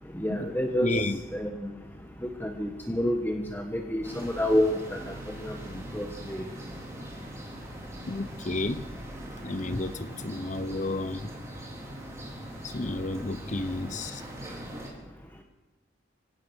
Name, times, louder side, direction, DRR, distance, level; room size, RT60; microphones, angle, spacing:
voice 1, 0.1-0.9 1.3-1.7 2.4-5.0 5.3-5.5 5.9-6.4, left 1 dB, 10° left, 1.3 m, -28 dB
voice 2, 0.8-1.2 8.1-8.8 9.4-11.3 12.7-14.2, left 2 dB, 40° left, 1.0 m, -31 dB
sound 1, 4.0-14.9, right 1 dB, 15° right, 4.2 m, -42 dB
24.0 x 17.0 x 6.5 m
head